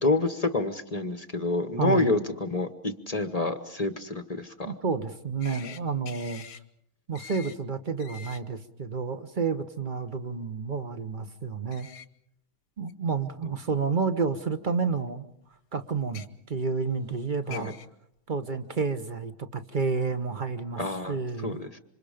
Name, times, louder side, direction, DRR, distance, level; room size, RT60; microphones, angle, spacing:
voice 1, 0.0-4.7 13.4-13.5 17.5-17.7 20.8-21.2 21.4-21.8, left 2 dB, 25° left, 9 dB, 0.8 m, -28 dB
voice 2, 1.8-2.1 4.6-6.4 7.1-11.9 12.8-15.3 15.7-17.7 18.3-20.8 21.1-21.6, right 5 dB, 40° right, 10 dB, 0.7 m, -30 dB
sound 1, 5.4-5.8 6.1-6.6 7.1-7.6 8.0-8.4 11.7-12.1 12.9-13.0 14.2-14.3 16.0-16.3 17.1-17.2 17.5-17.9, left 8 dB, 75° left, 1.9 m, -44 dB
28.0 x 26.5 x 5.1 m, 0.75 s
omnidirectional pair, 2.4 m